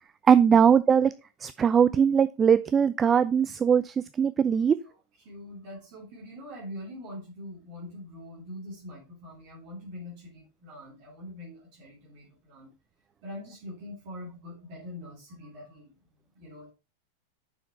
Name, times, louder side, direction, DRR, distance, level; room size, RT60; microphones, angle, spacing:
voice 1, 0.3-1.1 1.4-4.8, right 7 dB, 20° right, 14 dB, 0.3 m, -21 dB
voice 2, 4.8-12.7 13.2-15.9 16.3-16.7, left 1 dB, 45° right, -4 dB, 2.7 m, -43 dB
6.9 x 5.7 x 4.4 m, 0.29 s
figure-of-eight pair, 90°, 0 cm